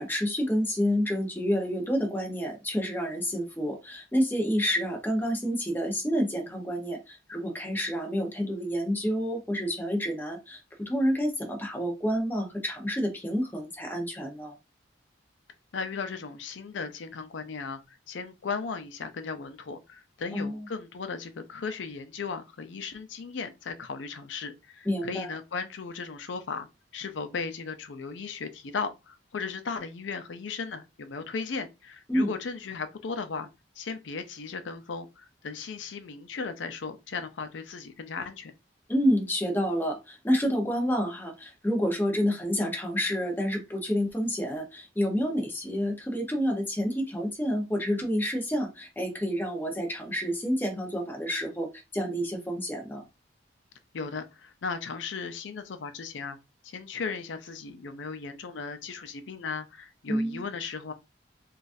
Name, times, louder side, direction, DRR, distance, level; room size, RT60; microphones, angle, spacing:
voice 1, 0.0-14.5 20.3-20.6 24.8-25.3 32.1-32.3 38.9-53.0 60.1-60.4, equal, 10° left, 0.8 m, -29 dB
voice 2, 15.7-26.7 26.9-33.5 33.8-38.5 53.9-56.4 56.6-60.9, left 5 dB, 85° left, 0.5 m, -36 dB
3.9 x 2.4 x 2.6 m
head